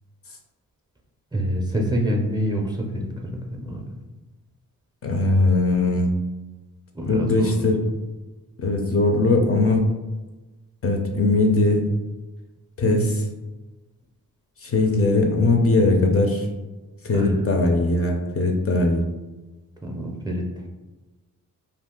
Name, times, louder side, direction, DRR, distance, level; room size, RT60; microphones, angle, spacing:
voice 1, 1.3-3.9 6.9-7.8 12.8-13.0 17.1-17.4 19.8-20.5, equal, 10° right, 0 dB, 0.4 m, -26 dB
voice 2, 5.0-6.1 7.1-7.8 8.6-9.9 10.8-11.9 12.8-13.0 14.6-16.5 17.0-19.0, left 2 dB, 40° left, 3 dB, 0.5 m, -20 dB
2.5 x 2.4 x 3.6 m, 1.2 s
cardioid pair, 85°, 35 cm